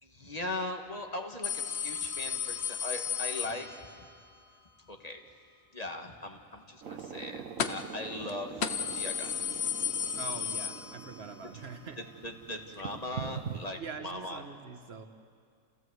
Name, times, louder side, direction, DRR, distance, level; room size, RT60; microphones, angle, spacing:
voice 1, 0.0-4.1 4.9-5.2 5.7-8.6 8.9-9.4 12.2-14.4, left 2 dB, 30° left, 4 dB, 1.6 m, -39 dB
sound 1, 1.4-4.1 7.6-8.0 8.3-8.4 8.6-11.3 11.7-11.8 12.8-12.9, left 8 dB, 55° left, 1.0 m, -34 dB
sound 2, 6.8-13.8, right 7 dB, 75° right, 1.3 m, -43 dB
voice 2, 10.1-12.0 13.8-15.1, right 5 dB, 50° right, 7 dB, 1.5 m, -43 dB
29.0 x 16.0 x 8.0 m, 2.2 s
omnidirectional pair, 1.4 m